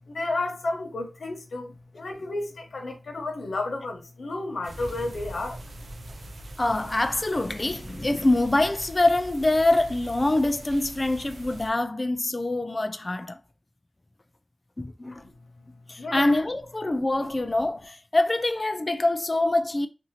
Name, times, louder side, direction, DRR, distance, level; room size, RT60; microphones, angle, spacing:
voice 1, 0.1-5.6 16.0-16.3, left 2 dB, 80° left, 0.7 m, -32 dB
sound 1, 4.6-11.7, right 1 dB, 80° right, 0.5 m, -42 dB
voice 2, 6.6-13.4 14.8-15.2 15.9-19.9, left 2 dB, 35° left, 0.4 m, -24 dB
2.8 x 2.6 x 2.7 m
cardioid pair, 55°, 0 cm